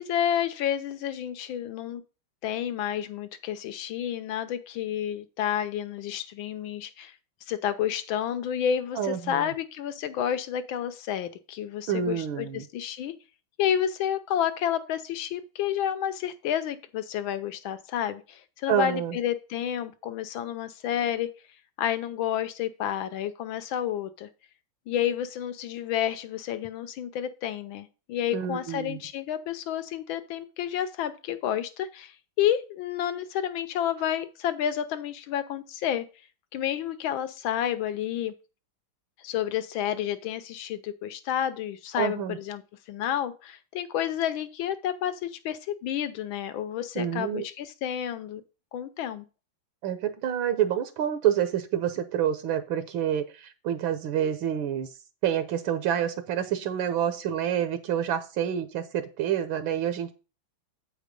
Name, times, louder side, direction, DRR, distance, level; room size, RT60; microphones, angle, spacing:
voice 1, 0.0-2.0 2.4-7.1 7.5-13.1 13.6-21.3 21.8-24.3 24.9-36.0 36.5-38.3 39.2-42.6 42.9-48.4 48.7-49.2, left 10 dB, 75° left, 10 dB, 1.5 m, -30 dB
voice 2, 8.9-9.5 11.9-12.7 18.7-19.2 28.3-29.0 42.0-42.4 46.9-47.4 49.8-54.9 55.2-60.1, right 9 dB, 75° right, 10 dB, 1.5 m, -28 dB
8.4 x 5.0 x 5.2 m, 0.33 s
omnidirectional pair, 2.3 m